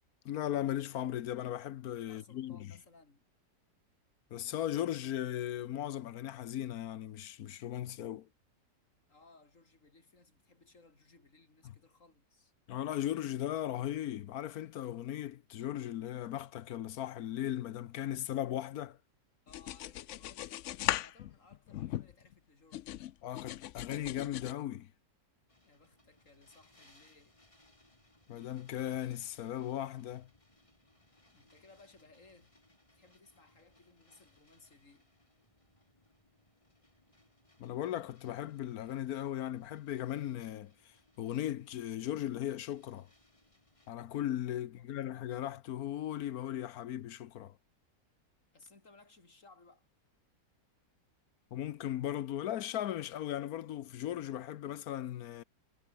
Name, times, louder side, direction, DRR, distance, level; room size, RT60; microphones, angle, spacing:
voice 1, 0.2-2.7 4.3-8.3 12.7-19.0 23.2-24.9 28.3-30.3 37.6-43.1 43.9-47.5 51.5-55.4, left 12 dB, 65° left, 1.1 m, -37 dB
voice 2, 2.0-3.3 9.1-12.5 19.4-23.0 25.6-27.4 31.3-32.5 32.9-35.1 44.6-44.9 48.5-49.9, left 3 dB, 45° left, 4.3 m, -61 dB
sound 1, 19.5-22.3 22.7-24.5, left 13 dB, 85° left, 0.6 m, -38 dB
sound 2, 25.5-43.9, left 1 dB, 15° left, 3.2 m, -67 dB
omnidirectional pair, 1.9 m